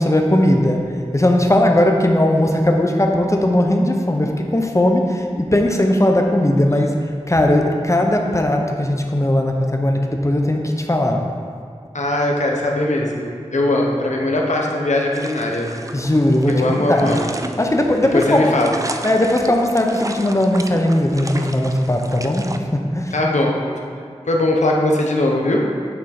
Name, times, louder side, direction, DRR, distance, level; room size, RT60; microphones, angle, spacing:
voice 1, 0.0-11.2 15.9-17.2 17.6-18.5 19.0-23.1, left 1 dB, 25° left, 2 dB, 0.7 m, -18 dB
voice 2, 11.9-15.7 16.5-17.3 18.1-18.7 23.1-23.6 24.3-25.6, left 1 dB, 80° left, 0 dB, 0.8 m, -20 dB
sound 1, 15.1-22.6, right 2 dB, 30° right, 0.4 m, -33 dB
9.1 x 3.6 x 4.2 m, 2.2 s
wide cardioid pair, 40°, 12 cm